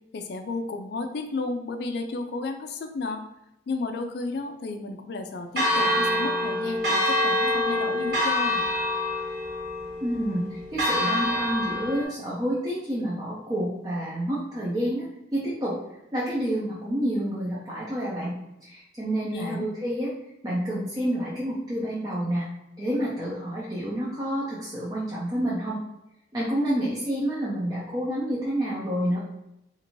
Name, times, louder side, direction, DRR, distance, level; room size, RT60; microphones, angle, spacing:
voice 1, 0.1-3.3 3.7-8.6 19.3-19.6, left 3 dB, 60° left, 6 dB, 0.3 m, -32 dB
Church bell, 5.6-12.0, left 1 dB, 60° right, 1.3 m, -26 dB
voice 2, 10.0-15.8 16.1-18.3 18.6-20.1 20.4-22.5 22.8-25.8 26.3-29.2, equal, 20° right, -7 dB, 0.5 m, -29 dB
2.6 x 2.5 x 3.0 m, 0.88 s
head